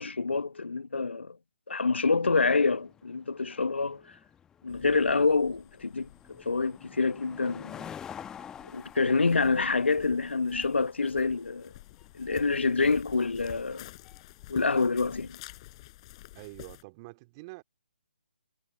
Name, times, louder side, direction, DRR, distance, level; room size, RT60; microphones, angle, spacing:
voice 1, 0.0-1.4 1.7-4.2 4.6-7.9 8.6-11.7 12.1-13.9 14.5-15.4, left 4 dB, 75° left, 1.2 m, -27 dB
sound 1, 2.2-15.7, left 8 dB, 10° left, 0.9 m, -49 dB
sound 2, 4.7-16.8, left 18 dB, 30° left, 5.2 m, -51 dB
voice 2, 16.3-17.6, right 25 dB, 25° right, 2.5 m, -46 dB
figure-of-eight pair, 140°, 6 cm